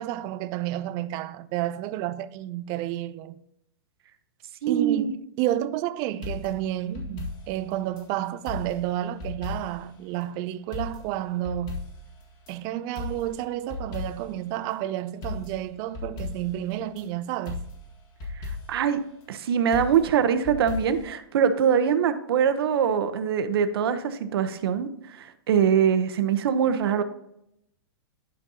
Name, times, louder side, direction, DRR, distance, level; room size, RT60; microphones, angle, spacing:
voice 1, 0.0-3.4 4.7-11.8 12.5-17.6, right 13 dB, 30° right, 0.4 m, -30 dB
voice 2, 4.6-5.1 18.4-19.0 19.3-24.9 25.2-27.0, right 7 dB, 70° right, 0.8 m, -23 dB
sound 1, 6.2-8.1 8.5-9.9 10.2-10.3 10.7-12.6 13.0-14.4 14.7-14.8 15.2-17.1 17.5-18.9 19.7-21.1, left 3 dB, 30° left, 1.7 m, -37 dB
11.0 x 5.2 x 2.8 m
hypercardioid pair, 155°, 13 cm